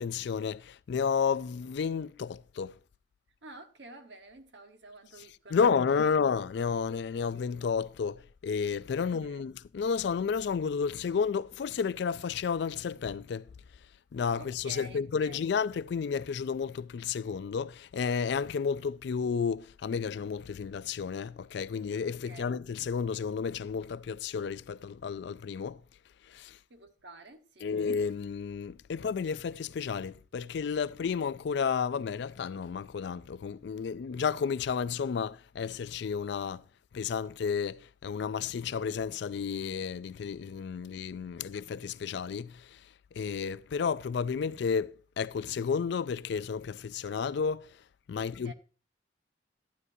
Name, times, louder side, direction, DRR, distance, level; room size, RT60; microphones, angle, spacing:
voice 1, 0.0-2.8 5.5-13.5 14.1-25.8 26.3-26.6 27.6-36.6 36.9-42.8 43.1-47.7 48.1-48.5, left 6 dB, 60° left, 0.3 m, -32 dB
voice 2, 3.4-5.6 9.2-9.4 14.4-15.5 22.2-22.5 26.7-27.8 48.2-48.5, right 2 dB, 65° right, 1.2 m, -50 dB
12.0 x 9.5 x 2.7 m
head